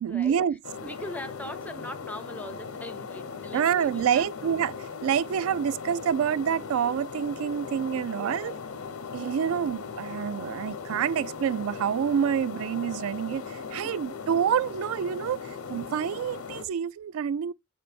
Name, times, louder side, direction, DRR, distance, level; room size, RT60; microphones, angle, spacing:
voice 1, 0.0-0.6 3.5-4.7 5.0-8.5 9.1-17.5, right 8 dB, 75° right, 0.3 m, -27 dB
sound 1, 0.6-16.6, left 5 dB, 85° left, 0.8 m, -38 dB
voice 2, 0.8-4.6 7.9-8.6 13.8-14.0, left 1 dB, 5° left, 0.4 m, -42 dB
7.5 x 3.2 x 4.2 m
head